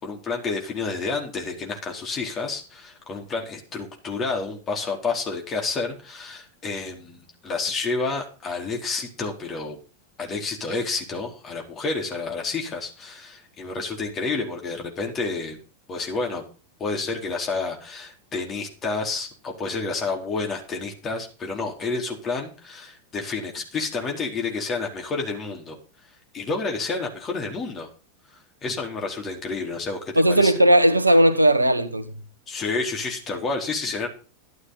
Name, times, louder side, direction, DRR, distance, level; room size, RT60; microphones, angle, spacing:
voice 1, 0.0-9.8 10.2-15.6 15.9-16.4 16.8-25.8 26.3-27.9 28.6-30.5 32.5-34.1, left 4 dB, 25° left, 4.3 m, -29 dB
voice 2, 30.1-32.1, right 1 dB, 85° right, 1.5 m, -17 dB
13.0 x 11.0 x 4.1 m
figure-of-eight pair, 90°, 0 cm